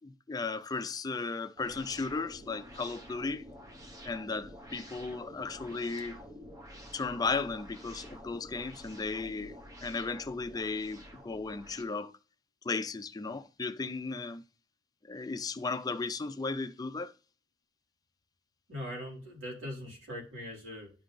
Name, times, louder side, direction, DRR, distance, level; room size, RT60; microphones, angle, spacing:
voice 1, 0.0-3.4 4.0-6.2 6.9-9.6 9.8-12.1 12.6-14.4 15.0-17.1, left 4 dB, 20° left, 0.4 m, -35 dB
sound 1, 1.6-11.8, equal, 20° right, 1.0 m, -49 dB
voice 2, 18.7-20.9, left 1 dB, 85° right, 4.2 m, -41 dB
11.0 x 3.9 x 3.2 m
head